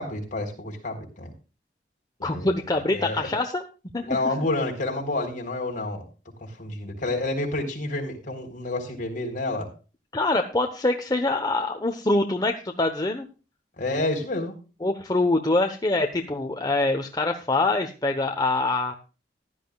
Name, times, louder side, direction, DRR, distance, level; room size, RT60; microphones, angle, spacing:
voice 1, 0.0-1.3 2.3-2.5 2.9-3.3 4.1-6.1 6.4-9.7 13.8-14.5, left 2 dB, 50° left, 2 dB, 3.9 m, -29 dB
voice 2, 2.2-3.6 3.9-4.2 10.1-13.3 14.8-18.9, left 2 dB, 25° left, 5 dB, 1.0 m, -24 dB
16.0 x 11.5 x 2.4 m, 0.33 s
head